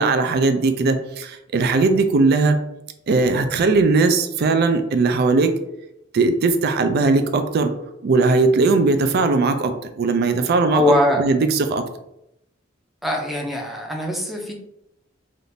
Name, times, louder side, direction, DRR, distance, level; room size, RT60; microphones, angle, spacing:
voice 1, 0.0-2.6 3.1-5.5 6.1-7.7 8.0-10.8 11.2-11.8, right 3 dB, 55° right, 8 dB, 0.4 m, -19 dB
voice 2, 10.7-11.2 13.0-14.5, left 1 dB, ahead, 0 dB, 0.5 m, -21 dB
3.4 x 2.5 x 2.7 m, 0.84 s
head